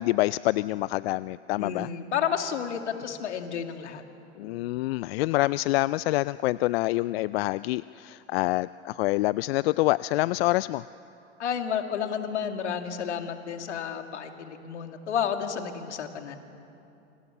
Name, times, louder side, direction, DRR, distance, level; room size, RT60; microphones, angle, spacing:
voice 1, 0.0-1.9 4.4-10.8, left 18 dB, 60° left, 18 dB, 0.5 m, -26 dB
voice 2, 1.6-4.0 11.4-16.4, left 8 dB, 75° left, 6 dB, 2.3 m, -31 dB
28.0 x 25.5 x 7.3 m, 2.8 s
hypercardioid pair, 90°, 35 cm